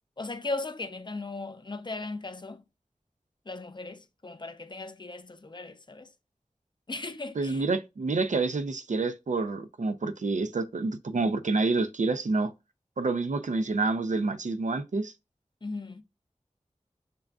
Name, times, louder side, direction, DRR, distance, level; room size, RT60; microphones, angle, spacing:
voice 1, 0.2-2.6 3.5-6.1 6.9-7.6 15.6-16.0, left 3 dB, 40° left, 0.5 m, -37 dB
voice 2, 7.3-12.5 13.0-15.1, right 3 dB, 75° right, 0.5 m, -28 dB
6.5 x 2.4 x 2.3 m
wide cardioid pair, 50°, 13 cm